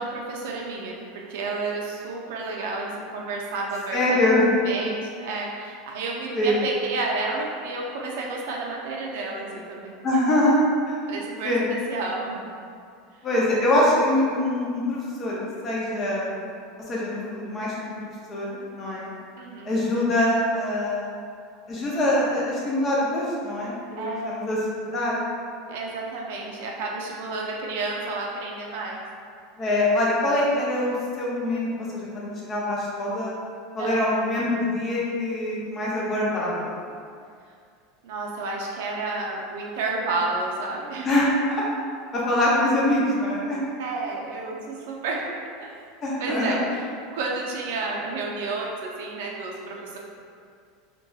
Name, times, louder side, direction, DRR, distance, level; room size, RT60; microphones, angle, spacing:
voice 1, 0.0-4.2 4.6-10.0 11.1-12.5 19.4-19.7 24.0-24.7 25.7-29.0 33.8-34.1 38.0-41.1 43.8-45.3 45.6-45.9 46.2-46.8 47.1-50.0, right 3 dB, 70° right, -2 dB, 0.4 m, -31 dB
voice 2, 3.9-4.5 6.3-6.6 10.0-11.0 11.4-11.7 13.2-15.4 15.6-16.4 16.9-19.1 19.7-21.1 21.7-24.6 24.9-25.2 29.6-33.3 33.7-36.8 41.0-41.6 42.1-43.6 46.0-46.6, left 1 dB, 20° left, -5 dB, 0.4 m, -24 dB
2.6 x 2.2 x 2.3 m, 2.3 s
supercardioid pair, 170°, 0 cm